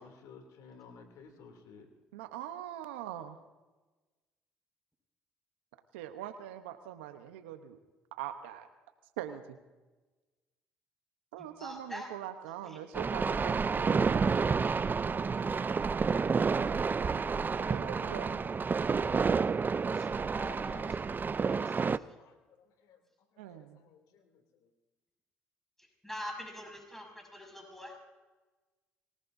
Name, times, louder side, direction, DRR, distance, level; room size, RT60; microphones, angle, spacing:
voice 1, 0.0-1.9 21.5-23.0 23.3-24.7, left 5 dB, 75° left, 5 dB, 2.8 m, -56 dB
voice 2, 2.1-3.4 5.9-7.8 8.1-8.7 9.2-9.6 11.3-14.2 17.7-18.4 23.4-23.8, right 11 dB, 90° right, 8 dB, 0.9 m, -42 dB
voice 3, 11.6-12.1 12.6-12.8 18.9-19.1 19.9-22.2 26.0-28.0, left 1 dB, 5° left, 2 dB, 6.0 m, -45 dB
sound 1, 12.9-22.0, right 5 dB, 30° right, 0.5 m, -30 dB
26.0 x 18.5 x 2.7 m, 1.2 s
hypercardioid pair, 60°, 6 cm